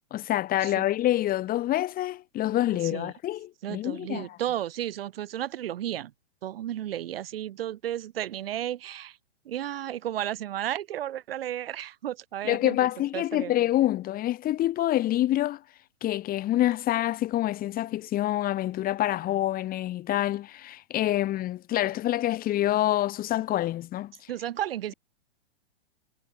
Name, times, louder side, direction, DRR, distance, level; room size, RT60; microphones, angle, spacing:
voice 1, 0.1-4.3 12.4-15.6 16.0-24.1, left 14 dB, 25° left, 4.1 m, -26 dB
voice 2, 3.6-6.1 6.4-9.2 9.4-12.8 13.1-13.5 24.3-24.9, right 12 dB, 60° right, 4.7 m, -33 dB
hypercardioid pair, 120°, 32 cm